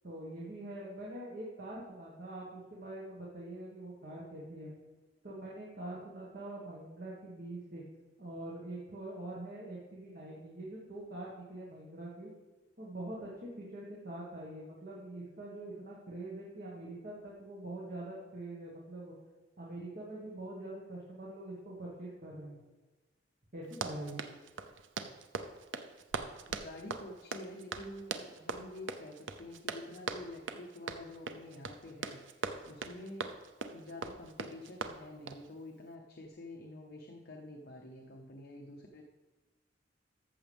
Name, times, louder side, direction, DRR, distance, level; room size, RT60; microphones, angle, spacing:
voice 1, 0.0-4.7 5.2-7.8 8.2-12.3 12.8-19.1 19.6-22.6 23.5-24.2, right 1 dB, 50° right, -5 dB, 1.6 m, -44 dB
Run, 23.6-35.5, right 5 dB, 85° right, 0.6 m, -41 dB
voice 2, 26.5-33.3 33.7-39.0, left 1 dB, 60° left, 1 dB, 0.8 m, -48 dB
14.0 x 7.0 x 3.5 m, 1.2 s
head